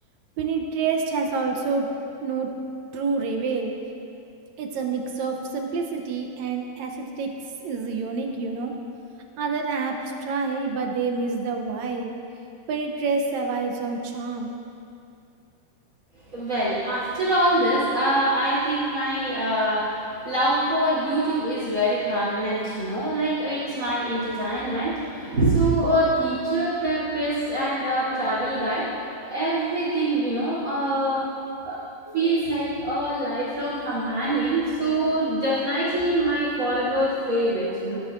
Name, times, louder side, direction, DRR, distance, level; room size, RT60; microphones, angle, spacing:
voice 1, 0.4-2.0 2.2-2.5 2.9-3.8 4.6-7.4 7.6-8.7 9.4-12.1 12.7-14.6, right 4 dB, 70° right, 2 dB, 1.9 m, -27 dB
voice 2, 16.3-31.3 31.6-31.8 32.1-38.0, right 1 dB, 25° right, -14 dB, 3.3 m, -24 dB
18.0 x 11.0 x 2.5 m, 2.6 s
omnidirectional pair, 3.7 m